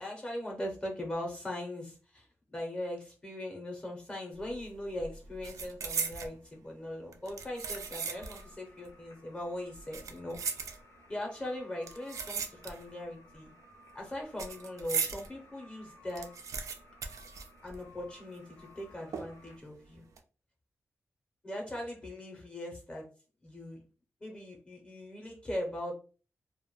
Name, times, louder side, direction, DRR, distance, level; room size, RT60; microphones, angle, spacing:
voice 1, 0.0-10.4 11.1-13.5 13.9-16.3 17.6-20.0 21.4-23.1 23.4-23.8 24.2-25.9, left 1 dB, 20° left, 0 dB, 0.5 m, -40 dB
sound 1, 4.4-4.7 4.9-6.4 7.1-8.5 8.8-8.9 9.7-11.2 11.8-13.0 13.3-15.3 15.7-15.8 16.0-18.1 18.3-18.4 19.1-19.6 20.0-20.2, right 5 dB, 80° right, 0.3 m, -38 dB
sound 2, 7.4-19.6, left 2 dB, 75° left, 0.5 m, -59 dB
2.2 x 2.0 x 2.9 m, 0.36 s
wide cardioid pair, 165°, 5 cm